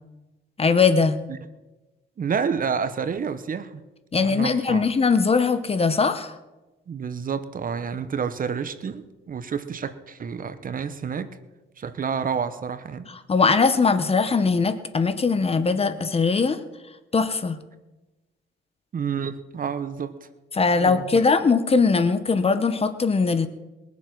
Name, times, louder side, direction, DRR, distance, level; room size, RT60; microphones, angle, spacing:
voice 1, 0.6-1.2 4.1-6.3 13.3-16.6 17.1-17.6 20.5-23.5, left 4 dB, 30° left, 11 dB, 1.1 m, -20 dB
voice 2, 2.2-3.8 4.1-4.8 6.9-11.3 11.8-13.1 18.9-20.3 20.8-21.2, right 6 dB, 45° right, 12 dB, 1.1 m, -29 dB
21.5 x 7.3 x 6.1 m, 1.1 s
cardioid pair, 90°, 20 cm